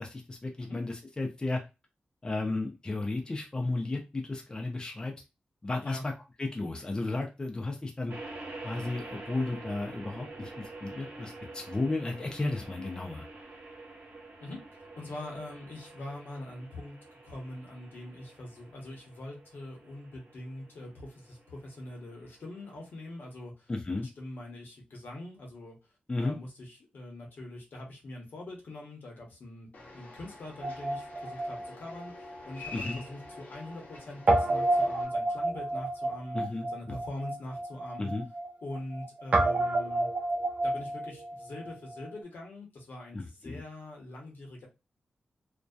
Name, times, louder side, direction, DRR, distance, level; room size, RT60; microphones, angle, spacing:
voice 1, 0.0-1.6 2.2-5.1 5.6-6.1 6.4-8.2 8.6-13.3 23.7-24.1 26.1-26.4 32.7-33.0 36.3-36.7 38.0-38.2 43.1-43.6, left 2 dB, 25° left, 2 dB, 0.5 m, -33 dB
sound 1, 8.1-23.4, right 2 dB, 80° right, 0.9 m, -47 dB
voice 2, 15.0-17.0 17.2-23.7 24.2-25.8 26.2-36.4 36.7-38.1 38.6-40.1 40.6-44.7, left 1 dB, 80° left, 0 dB, 0.9 m, -43 dB
sound 2, 29.7-35.0, left 2 dB, 55° left, 0.8 m, -47 dB
Guitar, 30.6-33.0 33.3-33.4 34.3-42.1, right 2 dB, 50° right, 0.5 m, -30 dB
2.6 x 2.2 x 2.2 m, 0.27 s
wide cardioid pair, 105°, 3 cm